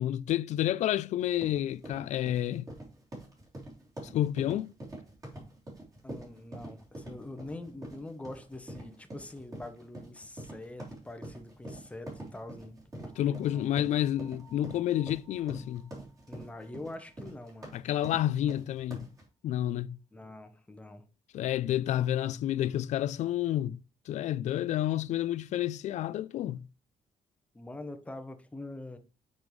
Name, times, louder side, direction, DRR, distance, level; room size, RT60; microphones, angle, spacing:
voice 1, 0.0-2.7 4.0-4.7 13.2-15.8 17.7-19.1 19.4-20.0 21.3-23.8 24.1-26.6, left 12 dB, 70° left, 0.4 m, -30 dB
sound 1, 1.2-19.2, right 1 dB, 30° right, 3.2 m, -45 dB
voice 2, 6.0-13.6 16.3-17.8 20.1-21.0 27.5-29.0, left 2 dB, 10° left, 0.9 m, -44 dB
sound 2, 13.1-18.2, right 4 dB, 60° right, 1.6 m, -63 dB
6.9 x 5.4 x 3.2 m
cardioid pair, 145°, 12 cm